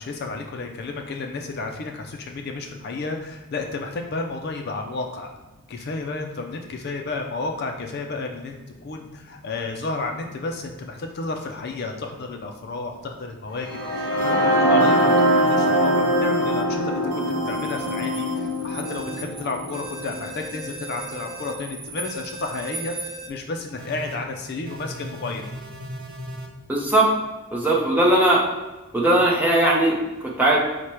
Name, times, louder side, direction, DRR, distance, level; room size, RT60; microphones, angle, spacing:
voice 1, 0.0-5.3 5.7-8.6 8.8-13.7 13.9-16.8 17.5-25.4, left 3 dB, 50° left, 3 dB, 0.4 m, -32 dB
sound 1, 13.6-21.5, equal, 20° left, 1.1 m, -23 dB
sound 2, 14.2-14.3 14.8-16.6 17.1-18.3 18.8-19.2 19.7-21.5 22.0-23.3 23.8-24.2 24.6-26.5, right 2 dB, 45° right, 0.5 m, -37 dB
sound 3, 17.4-23.3, right 3 dB, 85° right, 0.7 m, -40 dB
voice 2, 26.7-27.1 27.5-28.4 28.9-30.6, right 1 dB, 10° right, -3 dB, 0.7 m, -19 dB
4.7 x 2.1 x 4.3 m, 1.1 s
head